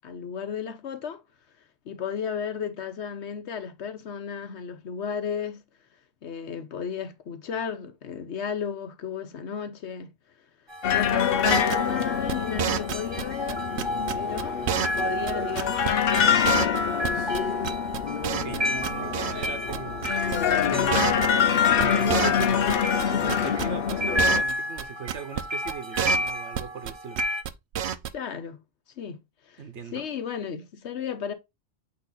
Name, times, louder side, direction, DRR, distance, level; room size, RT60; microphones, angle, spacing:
voice 1, 0.0-1.2 1.8-5.6 6.2-10.1 10.4-10.5 10.9-13.7 14.1-17.2 28.1-28.6 29.0-31.3, left 7 dB, 85° left, 1.1 m, -34 dB
sound 1, 10.7-27.4, equal, 25° right, 1.0 m, -32 dB
sound 2, 10.8-24.4, left 8 dB, 60° left, 0.8 m, -26 dB
sound 3, 11.4-13.2 13.5-15.0 15.3-15.4 15.6-15.9 16.1-16.2 16.4-17.4 17.6-18.6 18.8-19.5 19.7-19.8 20.0-20.4 20.6-20.7 20.9-21.5 21.8-23.0 23.3-24.5 24.8-24.9 25.1-25.4 25.7-26.9 27.2-27.5 27.7-28.1, right 9 dB, 75° right, 0.9 m, -28 dB
voice 2, 18.3-20.1 20.6-21.3 21.7-22.8 23.1-27.2 29.6-30.1, right 6 dB, 90° right, 1.3 m, -38 dB
8.6 x 3.2 x 3.9 m
omnidirectional pair, 1.1 m